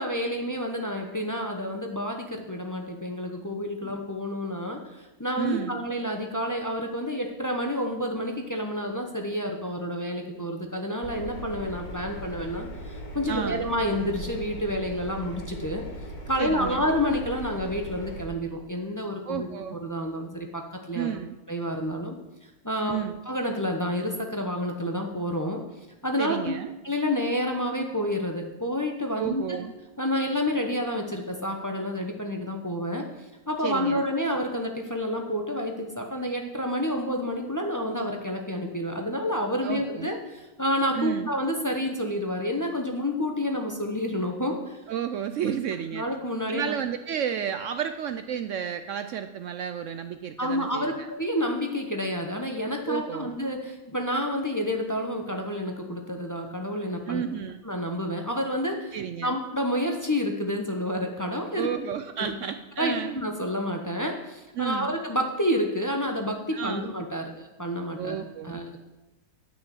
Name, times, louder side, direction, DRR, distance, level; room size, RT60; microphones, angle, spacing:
voice 1, 0.0-15.8 16.3-19.5 19.8-21.1 21.5-22.2 22.6-23.0 23.3-25.6 26.0-26.5 26.8-29.6 30.0-33.0 33.5-44.8 45.9-46.7 50.4-57.2 57.6-61.7 62.2-62.4 62.8-68.2 68.4-68.8, equal, 15° left, 2 dB, 0.9 m, -29 dB
voice 2, 5.4-5.8 13.3-13.6 16.4-16.9 19.2-19.8 20.9-21.4 22.8-23.2 26.2-26.7 29.2-29.7 33.6-34.1 39.6-40.1 40.9-41.3 44.9-46.1 46.5-51.1 52.9-53.3 57.1-57.6 58.9-59.4 61.6-63.2 64.6-64.9 66.5-66.9 68.0-68.6, right 9 dB, 65° right, 9 dB, 0.8 m, -32 dB
Engine, 11.0-18.3, equal, 35° left, 1.2 m, -39 dB
9.7 x 6.2 x 7.7 m, 1.0 s
omnidirectional pair, 1.5 m